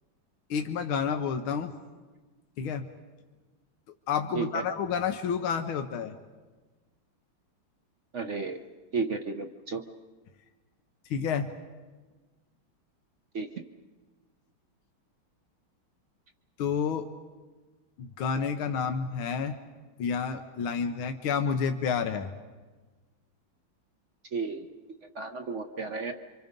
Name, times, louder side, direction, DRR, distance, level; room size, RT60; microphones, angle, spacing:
voice 1, 0.5-1.7 2.6-2.9 4.1-6.1 11.1-11.5 16.6-17.1 18.0-19.6 20.0-22.3, left 6 dB, 85° left, 6 dB, 1.8 m, -29 dB
voice 2, 8.1-8.6 8.9-9.8 13.3-13.5 24.3-24.7 25.0-26.1, right 4 dB, 50° right, 6 dB, 1.0 m, -33 dB
28.5 x 25.5 x 5.3 m, 1.3 s
omnidirectional pair, 2.2 m